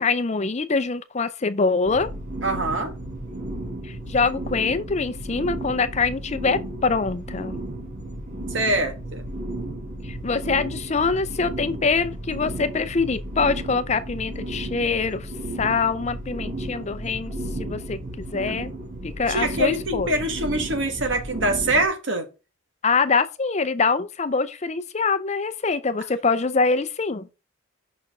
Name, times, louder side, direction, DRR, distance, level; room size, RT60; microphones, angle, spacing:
voice 1, 0.0-2.1 3.8-7.5 10.0-15.3 15.6-17.3 17.6-18.7 19.0-20.1 22.8-27.3, left 4 dB, 35° left, 0.5 m, -24 dB
sound 1, 1.8-21.8, right 1 dB, 40° right, 2.2 m, -34 dB
voice 2, 2.4-2.9 8.5-9.2 19.3-22.3, right 1 dB, 60° right, 1.6 m, -24 dB
5.9 x 4.5 x 6.0 m
head